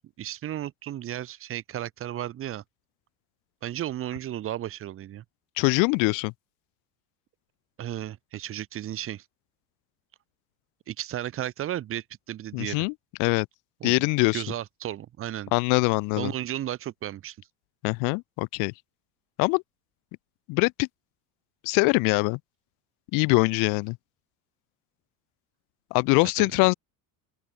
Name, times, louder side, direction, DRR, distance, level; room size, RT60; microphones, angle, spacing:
voice 1, 0.2-2.6 3.6-5.2 7.8-9.2 10.9-12.9 13.8-14.1 14.3-15.5 16.2-17.4 26.4-26.5, right 12 dB, 30° right, 2.2 m, -34 dB
voice 2, 5.6-6.3 12.5-12.9 13.2-13.5 13.8-14.4 15.5-16.3 17.8-18.7 19.4-19.6 20.5-20.9 21.6-22.4 23.1-24.0 25.9-26.7, left 30 dB, 45° left, 0.6 m, -23 dB
open air
cardioid pair, 175°, 44 cm